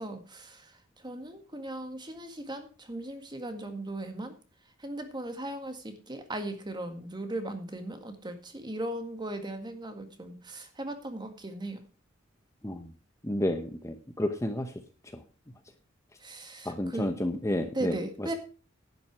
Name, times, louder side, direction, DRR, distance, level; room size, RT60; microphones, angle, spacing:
voice 1, 0.0-4.3 4.8-11.8 16.2-17.1 17.7-18.3, right 1 dB, 20° right, 7 dB, 1.9 m, -38 dB
voice 2, 13.2-14.7 15.1-15.2 16.6-18.3, left 1 dB, 15° left, 7 dB, 0.9 m, -31 dB
11.0 x 9.3 x 4.7 m, 0.35 s
head